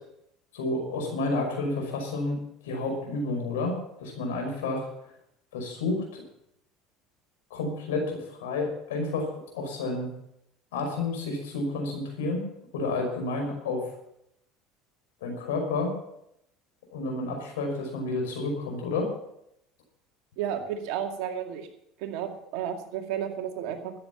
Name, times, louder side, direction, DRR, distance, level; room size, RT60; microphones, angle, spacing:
voice 1, 0.5-2.4 2.6-4.9 5.5-6.2 7.5-9.3 9.5-10.1 10.7-12.4 12.7-13.9 15.2-16.0 16.9-19.1, left 2 dB, 80° left, 2 dB, 5.5 m, -30 dB
voice 2, 20.4-21.7 22.0-23.9, right 9 dB, 65° right, 4 dB, 2.2 m, -32 dB
13.5 x 9.9 x 7.1 m, 0.78 s
hypercardioid pair, 75°, 0 cm